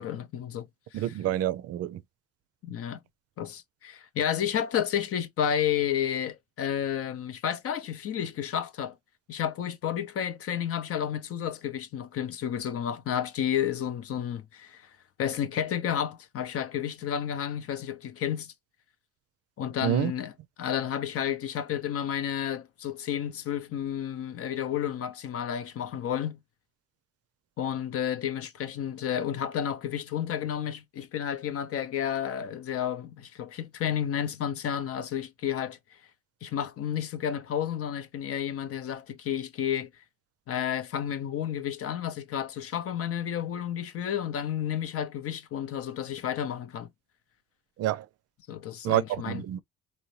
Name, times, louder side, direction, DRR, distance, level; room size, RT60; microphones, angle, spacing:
voice 1, 0.0-1.1 2.6-3.0 3.4-9.0 9.3-14.9 15.2-18.5 19.6-20.3 20.6-26.4 27.6-35.8 36.4-39.9 40.5-46.9 48.5-49.4, left 9 dB, 50° left, 0.7 m, -31 dB
voice 2, 0.9-2.0 19.8-20.1 47.8-48.1 48.8-49.6, right 13 dB, 55° right, 0.5 m, -28 dB
4.2 x 2.7 x 3.1 m
cardioid pair, 100°, 29 cm